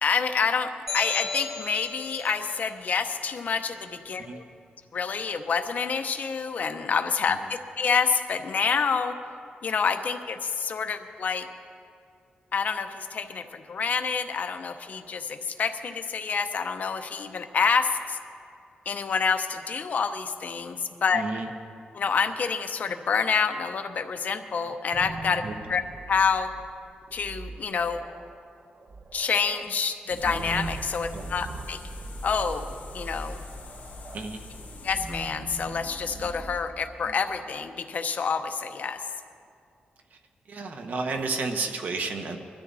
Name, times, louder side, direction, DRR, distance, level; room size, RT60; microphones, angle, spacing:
voice 1, 0.0-4.4 4.9-9.1 9.6-11.5 12.5-18.2 18.9-21.2 21.9-25.4 25.7-25.8 26.1-26.5 27.1-28.0 29.1-31.8 32.2-33.4 34.8-39.0, left 5 dB, 55° left, 7 dB, 0.8 m, -27 dB
sound 1, 0.9-2.3, left 4 dB, 10° right, 4.1 m, -33 dB
voice 2, 21.1-21.4 25.4-25.5 31.1-31.3 34.1-34.5 40.1-40.2 40.5-42.4, right 4 dB, 60° right, 4 dB, 1.4 m, -32 dB
sound 2, 24.6-37.5, right 2 dB, 40° right, 0.7 m, -41 dB
sound 3, 30.1-35.2, left 3 dB, 70° left, 2.0 m, -44 dB
22.5 x 13.0 x 4.1 m, 2.4 s
wide cardioid pair, 155°, 3 cm